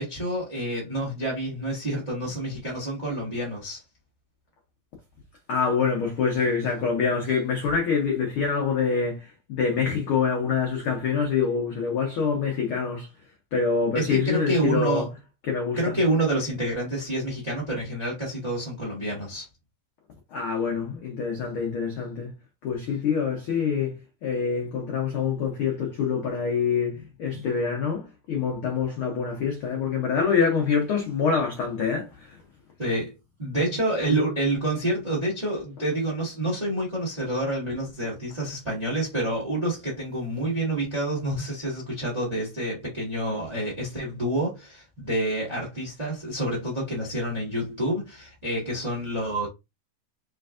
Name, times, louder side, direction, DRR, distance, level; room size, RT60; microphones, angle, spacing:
voice 1, 0.0-3.8 13.9-15.1 15.8-19.5 32.8-33.1 33.4-49.5, right 1 dB, 35° right, 0.6 m, -28 dB
voice 2, 5.5-13.1 13.5-15.1 15.4-16.0 20.3-22.3 22.6-32.4, left 6 dB, 85° left, 1.1 m, -26 dB
4.4 x 3.3 x 2.4 m
omnidirectional pair, 3.5 m